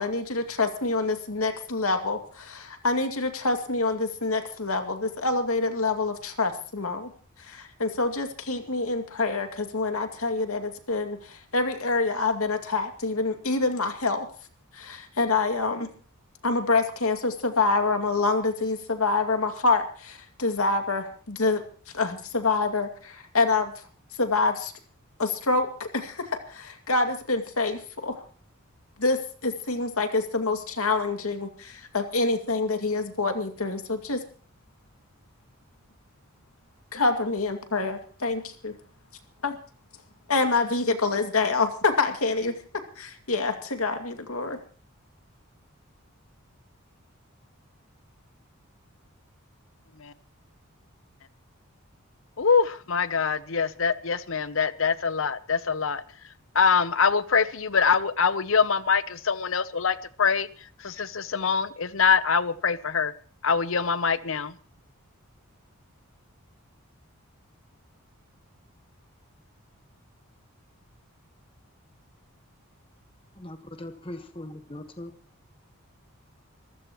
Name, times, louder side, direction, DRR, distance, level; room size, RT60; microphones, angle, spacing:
voice 1, 0.0-7.1 7.4-14.3 14.7-15.9 16.4-21.6 21.9-23.7 24.2-24.7 25.2-28.2 29.0-34.2 36.9-38.7 39.4-39.6 40.3-42.5 43.0-44.6, left 3 dB, 80° left, 6 dB, 2.4 m, -26 dB
voice 2, 52.4-56.0 56.5-60.5 60.8-63.1 63.4-64.5, left 6 dB, 65° left, 15 dB, 0.8 m, -24 dB
voice 3, 73.4-75.1, left 1 dB, 25° left, 6 dB, 1.3 m, -40 dB
25.5 x 15.0 x 3.1 m, 0.41 s
head